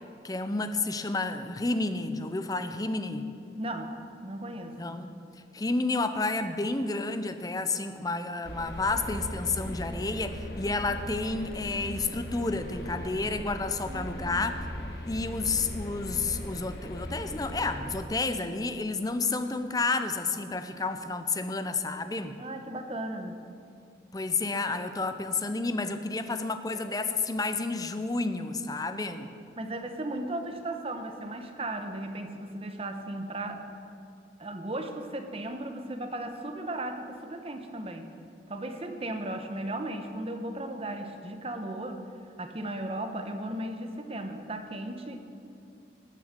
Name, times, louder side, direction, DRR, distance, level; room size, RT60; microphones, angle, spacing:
voice 1, 0.2-3.3 4.7-5.1 5.5-14.6 15.1-22.4 24.1-29.3, left 3 dB, 20° left, 9 dB, 0.6 m, -30 dB
voice 2, 3.5-3.9 4.2-5.0 13.9-14.5 22.4-23.3 29.6-33.6 34.4-38.1 38.5-42.0 42.4-45.2, right 1 dB, 35° right, 5 dB, 1.0 m, -36 dB
sound 1, 8.4-18.0, equal, 60° left, 1.5 m, -38 dB
19.0 x 6.6 x 6.7 m, 2.4 s
head